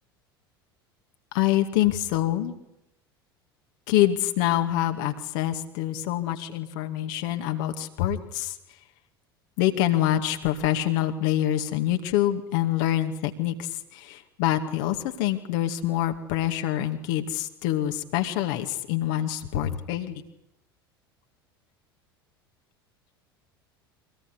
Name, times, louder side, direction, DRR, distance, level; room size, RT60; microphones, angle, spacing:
voice 1, 1.3-2.5 3.9-8.6 9.6-20.2, left 13 dB, 55° left, 6 dB, 2.3 m, -26 dB
24.5 x 19.0 x 9.9 m, 0.86 s
figure-of-eight pair, 70°, 12 cm